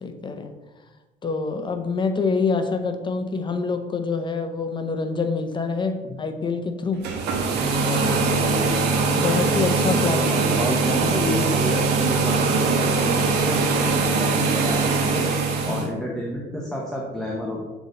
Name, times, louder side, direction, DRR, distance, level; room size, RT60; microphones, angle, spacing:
voice 1, 0.0-0.5 1.2-7.0 7.8-8.3 9.1-10.2 15.7-15.8, left 4 dB, 30° left, 7 dB, 0.7 m, -26 dB
sound 1, 6.9-15.9, right 4 dB, 85° right, 1.2 m, -22 dB
voice 2, 8.1-8.8 10.2-15.3 15.7-17.6, left 1 dB, 5° left, -3 dB, 1.1 m, -30 dB
7.1 x 4.0 x 3.9 m, 1.2 s
cardioid pair, 110°, 17 cm